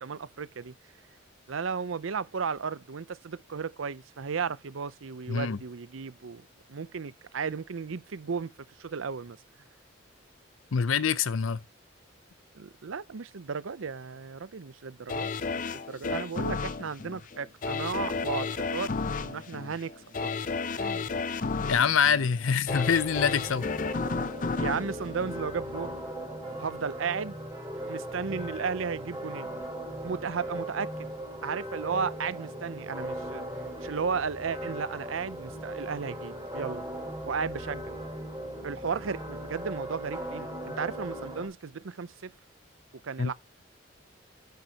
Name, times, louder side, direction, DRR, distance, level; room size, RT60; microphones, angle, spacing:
voice 1, 0.0-0.7 1.5-8.5 8.8-9.4 12.6-15.3 15.6-20.4 20.8-21.1 24.6-26.0 26.6-27.4 27.9-29.5 30.0-30.9 31.4-33.4 33.8-36.9 37.2-37.9 38.6-42.3 43.0-43.3, right 5 dB, 85° right, 0.6 m, -34 dB
voice 2, 5.3-5.6 10.7-11.6 21.6-23.7 43.2-43.3, left 6 dB, 85° left, 0.6 m, -25 dB
sound 1, 15.1-26.0 26.5-26.6, left 4 dB, 40° left, 0.5 m, -33 dB
sound 2, 22.7-41.5, right 1 dB, 15° right, 4.2 m, -38 dB
9.4 x 9.3 x 2.9 m
head